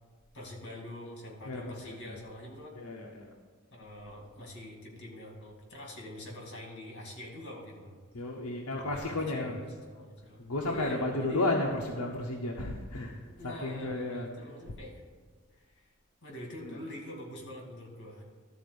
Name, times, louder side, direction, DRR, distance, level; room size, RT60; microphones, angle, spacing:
voice 1, 0.3-2.8 3.7-7.9 8.7-11.4 13.4-14.9 15.7-15.9 16.2-18.2, left 1 dB, 55° left, 0 dB, 2.3 m, -45 dB
voice 2, 2.8-3.3 8.1-9.6 10.5-13.2 13.6-14.3, left 2 dB, 80° left, -1 dB, 0.9 m, -32 dB
12.5 x 4.3 x 6.8 m, 1.5 s
head